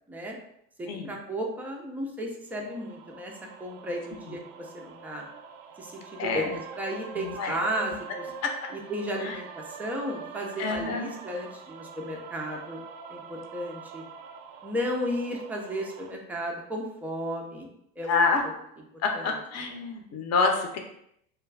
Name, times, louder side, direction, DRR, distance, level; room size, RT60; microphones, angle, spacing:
voice 1, 0.8-3.3 3.6-4.4 4.7-5.2 5.8-7.9 8.9-12.8 13.1-14.0 14.6-17.7 18.0-18.3 19.1-19.2, equal, 5° right, 0 dB, 0.3 m, -34 dB
sound 1, 2.5-16.1, right 6 dB, 65° right, 0.5 m, -44 dB
voice 2, 6.2-6.6 7.1-7.6 8.4-8.5 9.2-9.4 10.6-11.1 18.0-18.4 19.0-20.8, left 4 dB, 35° left, 3 dB, 0.6 m, -27 dB
2.4 x 2.3 x 3.2 m, 0.75 s
hypercardioid pair, 85°, 43 cm